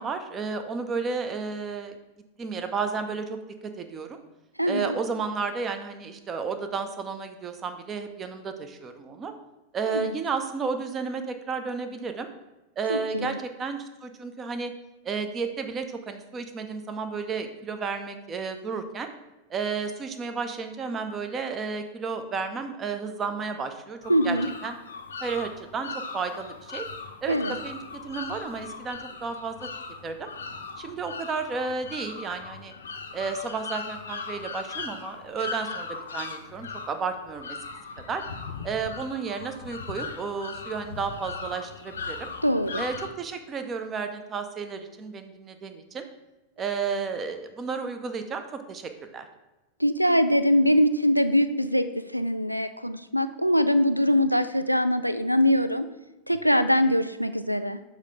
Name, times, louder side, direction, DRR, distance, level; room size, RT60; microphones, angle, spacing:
voice 1, 0.0-1.9 2.4-4.2 4.7-9.3 9.7-12.3 12.8-14.7 15.0-19.1 19.5-24.0 24.2-24.4 24.6-24.8 25.2-26.9 27.2-27.8 28.0-29.7 30.0-30.3 30.8-32.7 33.1-37.6 38.1-38.2 38.6-42.3 42.8-46.1 46.6-49.3, right 5 dB, 25° right, 8 dB, 0.6 m, -32 dB
voice 2, 4.6-5.0 9.9-10.1 12.9-13.4 24.1-24.5 27.3-27.6 42.4-42.8 49.8-55.9 56.3-57.8, equal, 90° right, 11 dB, 0.3 m, -23 dB
sound 1, 24.0-43.1, left 4 dB, 70° left, 0.5 m, -38 dB
6.6 x 3.2 x 4.9 m, 1.0 s
figure-of-eight pair, 90°, 0 cm